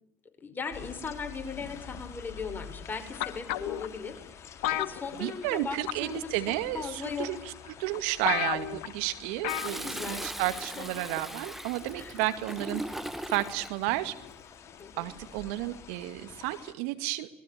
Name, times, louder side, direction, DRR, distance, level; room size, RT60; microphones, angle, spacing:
voice 1, 0.4-6.3 6.7-7.3 9.6-10.9 12.0-12.2 14.8-15.1, left 5 dB, 30° left, 6 dB, 6.3 m, -38 dB
sound 1, 0.7-16.7, left 7 dB, 45° left, 3.9 m, -48 dB
sound 2, 3.2-3.9 4.6-5.6 5.9-6.2 7.0-7.1 7.7-7.8 7.9-8.0 8.2-8.9 9.4-9.8 10.1-10.2, left 13 dB, 75° left, 1.9 m, -31 dB
voice 2, 5.2-7.4 7.8-12.8 13.3-14.2 15.0-17.3, right 16 dB, 75° right, 11 dB, 2.3 m, -32 dB
Toilet flush, 9.5-13.8 15.2-15.7, right 1 dB, 5° right, 1.4 m, -39 dB
28.0 x 21.0 x 8.8 m, 0.73 s
hypercardioid pair, 75°, 7 cm